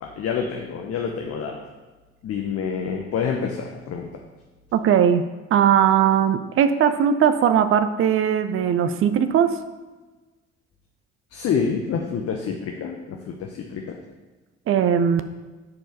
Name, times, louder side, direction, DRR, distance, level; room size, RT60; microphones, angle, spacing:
voice 1, 0.0-1.7 2.2-4.1 11.3-14.0, left 6 dB, 45° left, 1 dB, 0.9 m, -27 dB
voice 2, 4.7-5.2 5.5-9.5 14.7-15.2, right 8 dB, 40° right, 10 dB, 0.6 m, -19 dB
9.5 x 4.6 x 4.6 m, 1.2 s
figure-of-eight pair, 45°, 34 cm